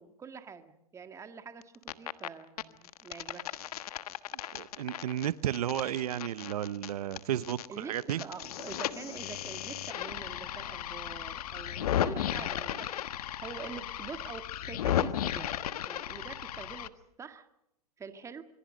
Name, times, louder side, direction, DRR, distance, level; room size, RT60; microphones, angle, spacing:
voice 1, 0.0-3.7 7.7-15.5 15.9-16.9 17.2-17.5 18.0-18.5, right 5 dB, 15° right, 8 dB, 1.9 m, -45 dB
sound 1, 1.6-2.3 2.6-7.7 7.9-16.9, left 11 dB, 75° left, 1.4 m, -35 dB
voice 2, 4.3-8.2, right 11 dB, 75° right, 16 dB, 1.0 m, -33 dB
26.5 x 22.0 x 6.5 m, 0.85 s
hypercardioid pair, 135°, 20 cm